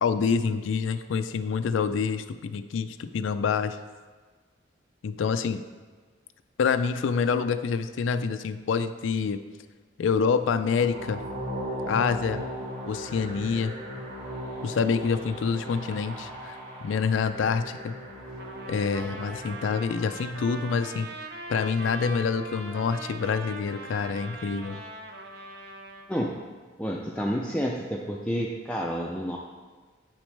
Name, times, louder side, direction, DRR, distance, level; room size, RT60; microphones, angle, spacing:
voice 1, 0.0-3.8 5.0-5.6 6.6-9.4 10.0-11.2 11.9-12.4 12.9-13.7 14.6-16.6 16.8-17.9 18.7-21.1 21.5-24.8, left 5 dB, 85° left, 10 dB, 0.4 m, -27 dB
sound 1, 10.4-20.6, equal, 85° right, 2.4 m, -38 dB
Trumpet, 18.4-26.1, right 2 dB, 55° right, 0.7 m, -41 dB
voice 2, 26.8-29.4, equal, 5° left, -2 dB, 0.4 m, -29 dB
8.8 x 6.1 x 3.3 m, 1.4 s
head